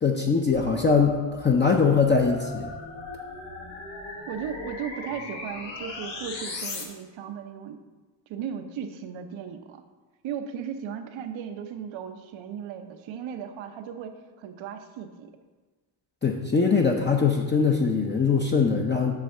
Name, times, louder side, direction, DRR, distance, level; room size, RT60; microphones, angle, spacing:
voice 1, 0.0-2.7 16.2-19.1, left 5 dB, 25° left, 1 dB, 0.6 m, -22 dB
sound 1, 0.5-6.8, left 3 dB, 70° left, 1.5 m, -38 dB
voice 2, 4.3-7.8 8.3-9.8 10.2-15.3, right 8 dB, 80° right, 7 dB, 0.9 m, -36 dB
8.3 x 3.4 x 6.5 m, 1.3 s
cardioid pair, 105°, 46 cm